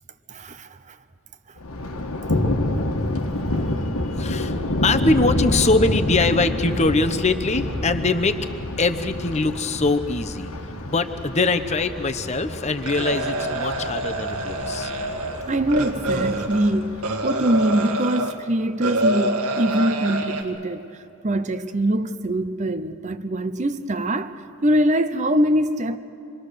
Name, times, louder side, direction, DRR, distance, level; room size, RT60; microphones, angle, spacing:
voice 1, 0.3-1.0 3.8-3.9 15.5-17.0 17.2-26.0, right 1 dB, 35° right, 0.7 m, -23 dB
Thunder, 1.6-17.5, left 1 dB, 75° left, 1.5 m, -28 dB
voice 2, 4.0-8.4 8.8-10.5 10.9-14.9, left 3 dB, 30° left, 0.9 m, -22 dB
sound 1, 12.8-18.3 18.8-20.4, right 1 dB, 85° right, 1.9 m, -26 dB
26.5 x 22.5 x 6.7 m
head